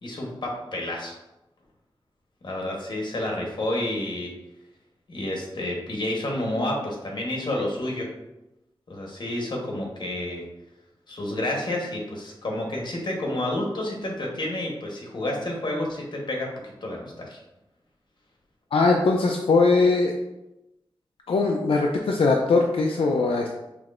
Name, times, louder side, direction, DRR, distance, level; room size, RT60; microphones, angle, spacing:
voice 1, 0.0-1.2 2.4-4.3 5.1-8.1 8.9-10.5 11.1-17.4, left 1 dB, 55° left, -1 dB, 1.1 m, -30 dB
voice 2, 18.7-20.1 21.3-23.5, left 3 dB, 85° left, 0 dB, 0.4 m, -21 dB
5.9 x 3.1 x 2.5 m, 0.95 s
wide cardioid pair, 125°, 9 cm